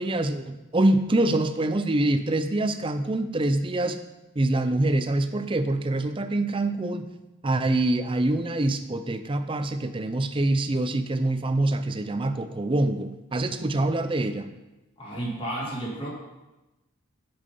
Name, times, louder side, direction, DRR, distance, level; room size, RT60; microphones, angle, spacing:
voice 1, 0.0-4.0 4.4-7.1 7.4-14.5, right 2 dB, 25° right, 9 dB, 0.5 m, -25 dB
voice 2, 15.0-16.1, right 1 dB, 25° left, -4 dB, 2.6 m, -32 dB
8.3 x 7.2 x 5.4 m, 1.0 s
head